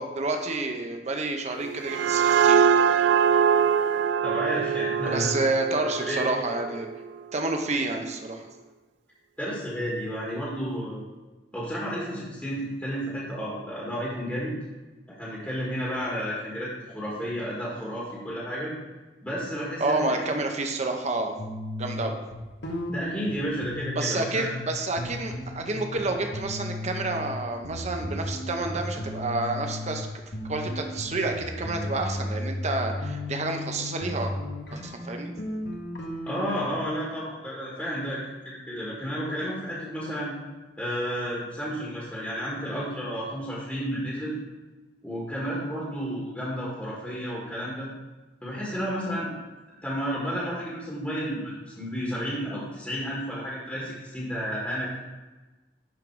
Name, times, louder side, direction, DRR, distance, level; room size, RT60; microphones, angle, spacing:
voice 1, 0.0-2.6 5.1-6.9 7.3-8.5 19.8-21.4 21.8-22.2 24.0-30.1 30.5-34.3 34.7-35.3, right 2 dB, 40° right, 4 dB, 0.9 m, -29 dB
sound 1, 1.6-7.1, right 7 dB, 90° right, 0.3 m, -23 dB
voice 2, 4.2-5.3 5.8-6.2 9.4-11.1 11.5-14.5 15.1-18.7 19.2-20.2 22.9-24.5 36.2-40.3 40.8-44.4 45.0-47.9 48.4-49.3 49.8-55.0, equal, 10° left, -6 dB, 1.5 m, -32 dB
sound 2, 21.4-24.7 25.0-27.3 27.6-30.0 30.3-36.7, left 1 dB, 85° left, 1.2 m, -35 dB
11.0 x 3.9 x 4.6 m, 1.2 s
head